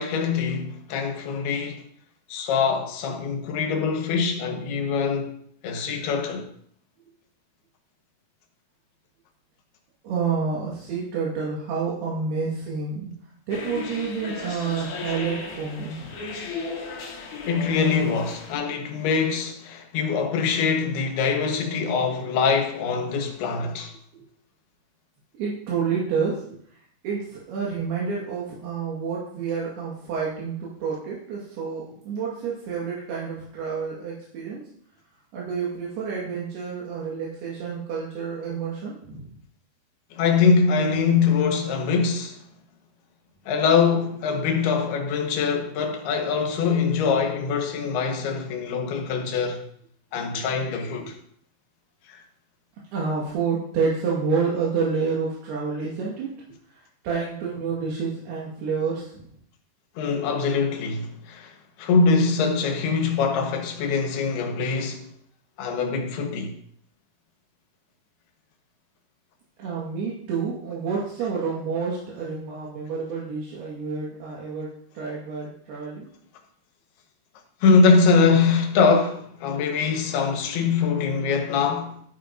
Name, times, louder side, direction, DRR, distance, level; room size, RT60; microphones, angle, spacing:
voice 1, 0.0-1.8 2.3-5.3 5.6-6.5 17.5-23.9 40.1-42.4 43.5-49.6 50.1-51.2 52.1-52.2 60.0-61.5 61.8-65.1 65.6-66.6 77.6-82.0, left 5 dB, 80° left, 3.2 m, -23 dB
voice 2, 10.0-13.1 13.5-16.2 25.4-26.4 27.0-34.6 35.3-39.3 51.0-51.1 52.9-56.3 56.7-59.3 69.6-74.7 75.0-76.1, right 5 dB, 80° right, 3.6 m, -29 dB
sound 1, 13.5-18.5, left 4 dB, 55° left, 2.4 m, -35 dB
12.0 x 9.4 x 2.6 m
omnidirectional pair, 4.6 m